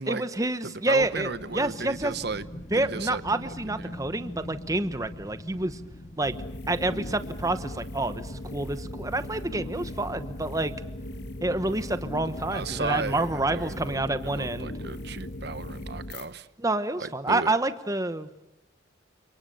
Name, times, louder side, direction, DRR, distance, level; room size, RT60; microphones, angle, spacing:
voice 1, 0.1-2.1 2.7-5.8 6.2-6.3 6.7-10.7 11.4-14.7 16.6-18.4, right 2 dB, 15° right, 1.0 m, -28 dB
voice 2, 0.6-2.5 2.7-3.9 12.5-16.5 17.0-17.5, right 3 dB, 55° right, 1.0 m, -35 dB
Wind, 1.0-7.9, left 1 dB, 35° left, 1.1 m, -43 dB
sound 1, 6.2-16.3, left 1 dB, 55° left, 2.1 m, -38 dB
29.5 x 27.5 x 6.9 m
head